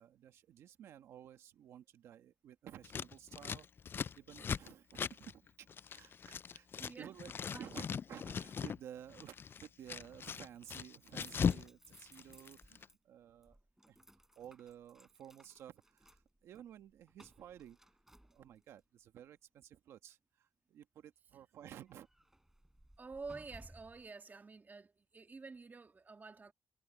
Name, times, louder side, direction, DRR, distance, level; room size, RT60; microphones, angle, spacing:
voice 1, 0.0-3.7 4.2-5.7 5.9-7.3 7.6-13.6 13.9-14.0 14.4-17.8 18.3-22.1, right 10 dB, 90° right, 1.3 m, -54 dB
Scissors, 2.8-6.9 7.2-8.8 9.1-11.7 11.9-12.8, left 6 dB, 55° left, 0.3 m, -39 dB
voice 2, 6.7-7.1 7.5-7.8 23.0-26.5, right 4 dB, 40° right, 2.1 m, -49 dB
sound 1, 10.6-13.0 13.2-18.8 21.9-24.1, right 1 dB, 10° right, 6.4 m, -61 dB
supercardioid pair, 55°, 5 cm